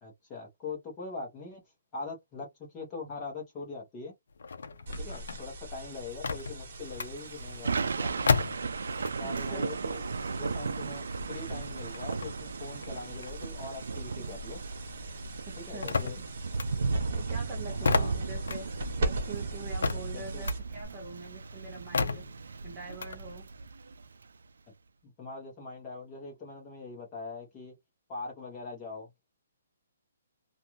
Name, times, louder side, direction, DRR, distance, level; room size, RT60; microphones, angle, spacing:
voice 1, 0.0-1.6 1.9-4.1 5.0-8.4 9.2-10.0 10.4-14.6 15.6-16.2 17.8-18.2 20.1-20.5 25.0-27.7 28.1-29.1, left 3 dB, 15° left, 1.0 m, -42 dB
sound 1, 4.3-9.5 9.8-14.6 14.9-23.2, left 4 dB, 75° left, 0.5 m, -34 dB
sound 2, 4.9-20.9, right 1 dB, 40° right, 1.2 m, -40 dB
Thunder / Rain, 6.8-24.3, right 4 dB, 85° right, 0.3 m, -36 dB
voice 2, 9.2-9.7 15.5-16.2 17.2-18.7 19.0-22.2 22.6-23.5, right 3 dB, 15° right, 0.6 m, -44 dB
2.5 x 2.4 x 2.9 m
hypercardioid pair, 180°, 0 cm